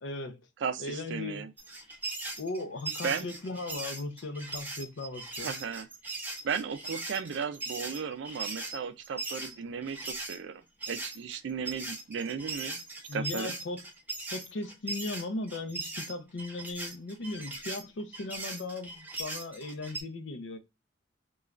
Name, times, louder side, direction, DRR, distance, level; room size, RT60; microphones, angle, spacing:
voice 1, 0.0-0.4 0.8-1.5 2.4-5.5 13.1-13.8 14.3-20.6, left 2 dB, 65° left, 0.5 m, -37 dB
voice 2, 0.6-1.5 3.0-3.3 5.4-5.9 6.4-10.6 10.9-12.8 13.1-13.5, right 6 dB, 65° right, 0.3 m, -35 dB
sound 1, 1.6-10.4 10.8-20.0, right 2 dB, 10° right, 0.6 m, -39 dB
3.1 x 2.3 x 2.3 m
head